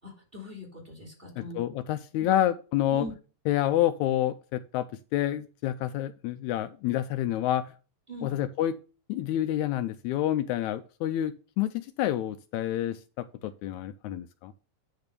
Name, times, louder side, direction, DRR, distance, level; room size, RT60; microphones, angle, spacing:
voice 1, 0.0-1.6 2.2-2.5 2.9-3.1 8.1-8.4, equal, 15° right, 0 dB, 3.4 m, -41 dB
voice 2, 1.4-3.1 3.5-4.9 5.1-7.6 8.2-8.7 9.1-14.5, left 12 dB, 80° left, 10 dB, 1.9 m, -28 dB
9.6 x 4.1 x 6.8 m, 0.36 s
omnidirectional pair, 3.4 m